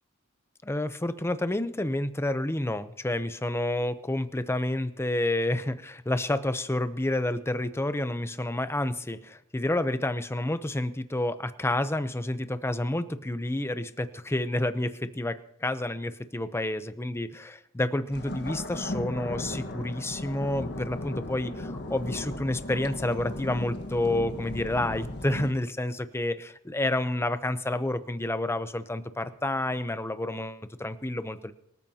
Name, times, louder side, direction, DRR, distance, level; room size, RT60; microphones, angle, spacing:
voice 1, 0.6-31.5, left 1 dB, 10° left, 11 dB, 0.7 m, -29 dB
sound 1, 18.1-25.5, left 1 dB, 55° left, 1.5 m, -36 dB
24.5 x 13.5 x 2.8 m, 0.81 s
head